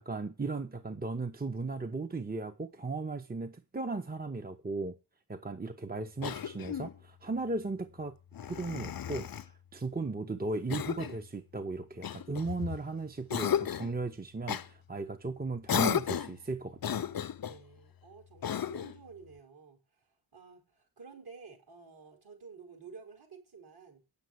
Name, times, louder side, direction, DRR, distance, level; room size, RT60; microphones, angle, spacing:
voice 1, 0.0-5.0 5.3-8.2 8.5-17.1, right 3 dB, 20° right, 0.9 m, -36 dB
Cough, 6.2-7.0 8.3-9.5 10.7-11.2 12.0-12.8 13.3-13.9 14.5-14.7 15.7-16.4 16.8-17.6 18.4-19.0, left 9 dB, 55° left, 0.6 m, -34 dB
voice 2, 17.4-24.0, right 5 dB, 60° right, 5.0 m, -52 dB
9.4 x 7.1 x 7.9 m
wide cardioid pair, 105°, 43 cm